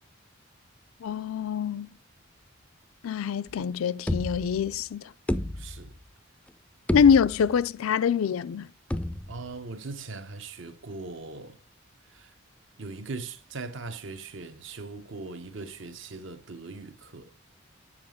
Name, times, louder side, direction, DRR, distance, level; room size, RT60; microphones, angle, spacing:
voice 1, 1.0-1.9 3.0-5.0 6.9-8.7, left 7 dB, 90° left, 0.4 m, -24 dB
sound 1, 3.5-3.6 4.1-4.8 5.3-6.1 6.5-6.6 6.9-7.7 8.9-9.6, left 1 dB, 5° left, 0.3 m, -31 dB
voice 2, 5.5-5.9 9.3-11.6 12.1-12.3 12.8-17.3, right 3 dB, 65° right, 0.8 m, -40 dB
7.4 x 5.0 x 6.2 m
head